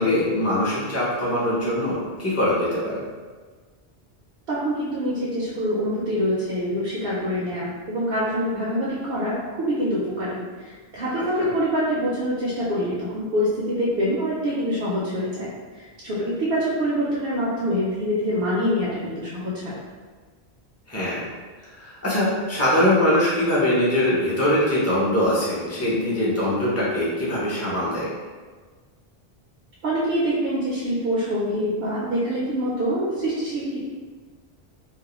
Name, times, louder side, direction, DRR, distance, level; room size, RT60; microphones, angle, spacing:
voice 1, 0.0-3.0 11.4-11.5 20.9-21.2 21.7-28.1, left 1 dB, 20° left, -8 dB, 0.6 m, -22 dB
voice 2, 4.5-15.5 15.7-19.8 29.8-33.8, equal, 70° right, -7 dB, 0.8 m, -25 dB
2.3 x 2.1 x 2.9 m, 1.5 s
omnidirectional pair, 1.1 m